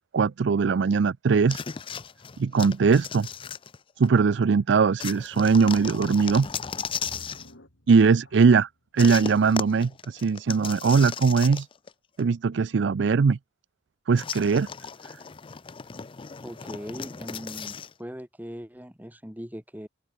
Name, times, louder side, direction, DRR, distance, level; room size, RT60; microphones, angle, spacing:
voice 1, 0.1-1.6 2.4-3.3 4.0-6.5 7.9-11.7 12.2-13.4 14.1-14.7, right 5 dB, 70° right, 0.4 m, -21 dB
sound 1, 1.5-4.2 5.0-7.5 9.0-11.9 12.2-12.3 14.2-17.9, left 7 dB, 30° left, 0.5 m, -36 dB
sound 2, 6.4-8.9 9.5-9.6 10.2-10.3, equal, 85° left, 7.7 m, -51 dB
voice 2, 16.4-19.9, equal, 10° right, 3.4 m, -40 dB
open air
head